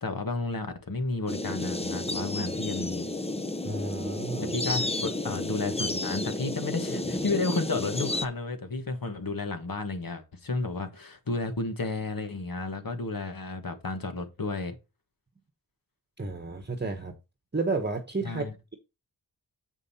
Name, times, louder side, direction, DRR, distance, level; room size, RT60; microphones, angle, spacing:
voice 1, 0.0-3.1 4.5-14.8 18.2-18.5, left 3 dB, 55° left, 1.5 m, -32 dB
sound 1, 1.3-8.3, left 2 dB, 15° left, 0.6 m, -32 dB
voice 2, 3.6-4.6 16.2-17.1 17.5-18.7, right 3 dB, 25° right, 1.1 m, -32 dB
7.4 x 5.3 x 4.2 m
wide cardioid pair, 70°, 41 cm